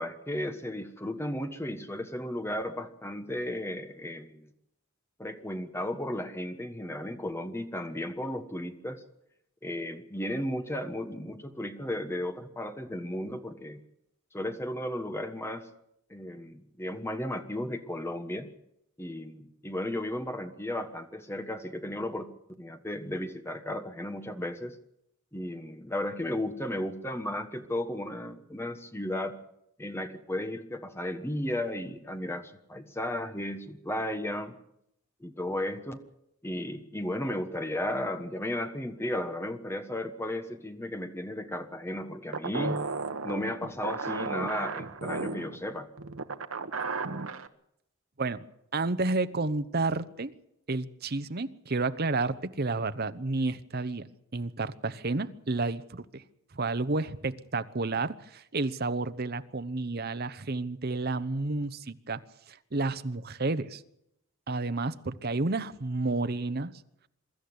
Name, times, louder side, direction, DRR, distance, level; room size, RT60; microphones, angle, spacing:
voice 1, 0.0-4.5 5.2-9.0 9.6-13.8 14.3-15.7 16.1-18.5 19.0-22.3 22.6-24.8 25.3-29.4 29.8-34.5 35.2-36.0 36.4-42.8 43.2-45.9, left 1 dB, 10° left, 8 dB, 1.4 m, -34 dB
sound 1, 42.3-47.5, right 4 dB, 75° right, 1.2 m, -34 dB
voice 2, 48.7-50.3 50.7-54.1 54.3-56.2 56.5-62.2 62.5-63.8 64.5-66.7, right 3 dB, 45° right, 12 dB, 0.9 m, -31 dB
23.5 x 13.5 x 9.6 m, 0.79 s
head